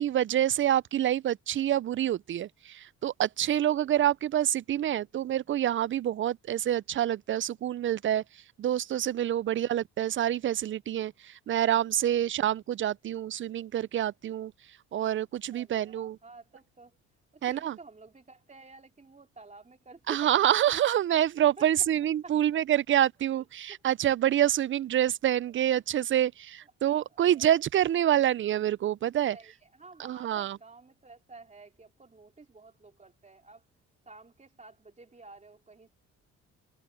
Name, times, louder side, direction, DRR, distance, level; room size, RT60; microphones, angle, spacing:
voice 1, 0.0-14.5 14.9-16.2 17.4-17.8 20.1-29.4 30.0-30.6, right 11 dB, 40° right, 0.4 m, -27 dB
voice 2, 15.5-17.0 17.3-20.4 21.6-21.7 22.2-22.3 25.5-25.8 26.9-27.5 29.2-33.6 34.1-35.9, right 3 dB, 25° right, 3.8 m, -51 dB
cardioid pair, 90°, 30 cm